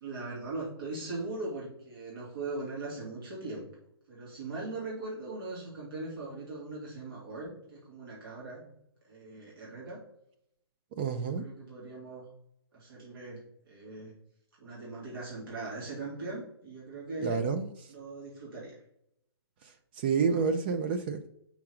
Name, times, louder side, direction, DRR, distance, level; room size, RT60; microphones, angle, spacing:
voice 1, 0.0-3.7 4.1-8.6 9.0-10.0 11.2-12.3 12.7-14.1 14.6-17.4 17.9-18.7, right 2 dB, 55° right, 2.6 m, -40 dB
voice 2, 10.9-11.5 17.2-17.7 20.0-21.2, right 5 dB, 25° right, 0.4 m, -29 dB
5.9 x 3.6 x 5.7 m
hypercardioid pair, 155°, 14 cm